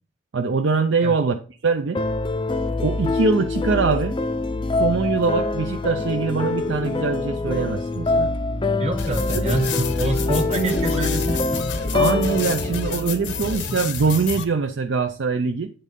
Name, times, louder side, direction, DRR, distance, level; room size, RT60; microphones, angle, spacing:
voice 1, 0.3-1.4 1.6-2.0 2.8-4.1 4.8-8.3 9.5-9.6 10.5-10.8 11.9-15.7, right 4 dB, 65° right, 6 dB, 0.5 m, -23 dB
sound 1, 1.9-14.1, left 3 dB, 25° left, 0.5 m, -25 dB
voice 2, 8.8-11.6, right 1 dB, 35° right, 5 dB, 1.1 m, -26 dB
sound 2, 9.0-14.4, left 5 dB, 65° left, 0.8 m, -30 dB
8.6 x 3.6 x 5.2 m, 0.39 s
head